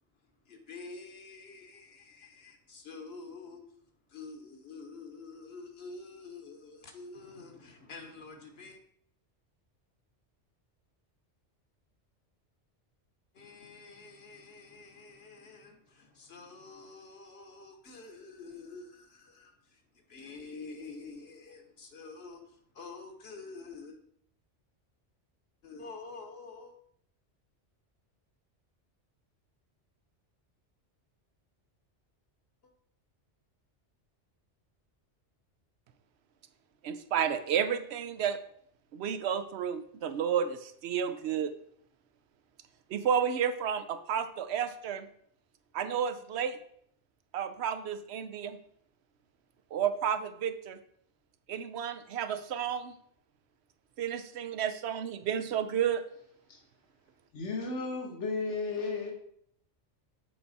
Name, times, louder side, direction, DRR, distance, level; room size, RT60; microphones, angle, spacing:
voice 1, 0.4-3.6 4.1-8.8 13.3-19.8 20.1-24.0 25.6-26.8, left 4 dB, 60° left, 1.3 m, -48 dB
voice 2, 36.8-38.4 38.9-41.5 42.9-45.1 45.7-46.6 47.3-48.6 49.7-50.8 51.5-52.9 54.0-56.0, right 8 dB, 70° right, 0.8 m, -31 dB
voice 3, 57.3-59.1, left 3 dB, 80° left, 1.6 m, -34 dB
7.7 x 4.5 x 4.1 m
omnidirectional pair, 1.2 m